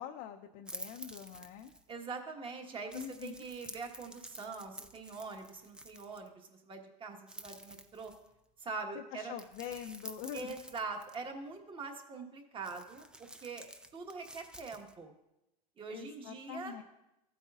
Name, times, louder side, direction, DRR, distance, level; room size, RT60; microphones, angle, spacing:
voice 1, 0.0-1.7 2.9-3.3 8.9-10.6 15.9-16.8, left 9 dB, 55° left, 3 dB, 0.6 m, -44 dB
sound 1, 0.7-1.9 2.9-6.3 7.3-8.4 9.4-11.1 12.6-14.9, right 1 dB, 5° right, 0.5 m, -50 dB
voice 2, 1.9-8.1 8.6-9.3 10.3-15.1 15.8-16.8, right 4 dB, 25° right, 4 dB, 1.3 m, -43 dB
14.5 x 8.3 x 2.4 m, 0.91 s
supercardioid pair, 120°, 20 cm